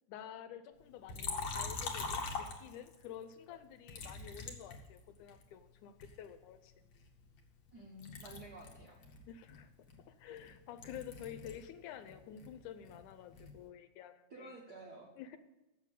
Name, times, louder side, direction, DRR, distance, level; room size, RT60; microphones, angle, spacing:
voice 1, 0.1-6.7 9.3-9.7 10.0-14.5 15.2-15.4, left 9 dB, 80° left, 10 dB, 2.1 m, -50 dB
Liquid, 1.1-3.1 3.9-5.4 6.0-7.7 8.0-11.7 12.0-13.6, left 4 dB, 55° left, 1.6 m, -43 dB
voice 2, 7.7-9.0 14.3-15.1, right 2 dB, 55° right, -2 dB, 1.1 m, -51 dB
7.5 x 7.0 x 8.2 m, 1.0 s
omnidirectional pair, 3.6 m